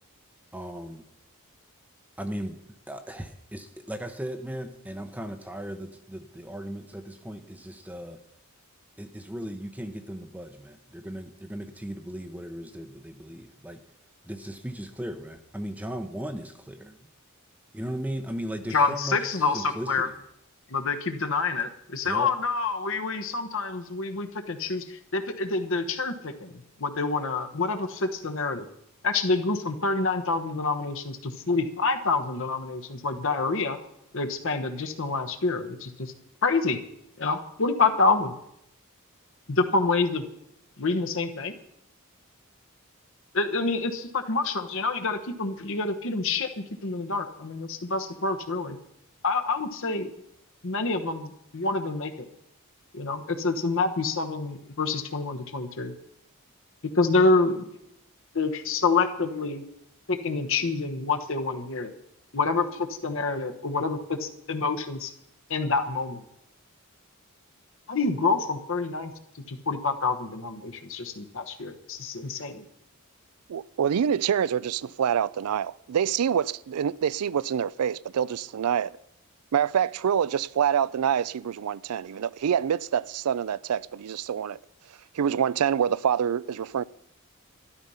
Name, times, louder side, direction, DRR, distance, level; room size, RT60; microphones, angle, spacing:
voice 1, 0.5-1.0 2.2-2.6 2.9-8.2 9.0-13.8 14.2-17.0 17.7-20.2 22.0-22.3, equal, 5° right, 0.7 m, -37 dB
voice 2, 18.7-20.1 20.7-28.7 29.0-33.8 34.1-36.1 36.4-36.8 37.2-38.3 39.5-40.2 40.8-41.6 43.3-48.8 49.2-50.1 50.6-52.3 52.9-55.9 56.9-57.7 58.3-59.7 60.1-61.9 62.3-65.1 65.5-66.2 67.9-69.1 69.5-72.6, left 3 dB, 60° left, 1.1 m, -27 dB
voice 3, 73.5-78.9 79.5-84.6 85.1-86.8, right 8 dB, 85° right, 0.4 m, -26 dB
12.5 x 12.0 x 5.6 m
head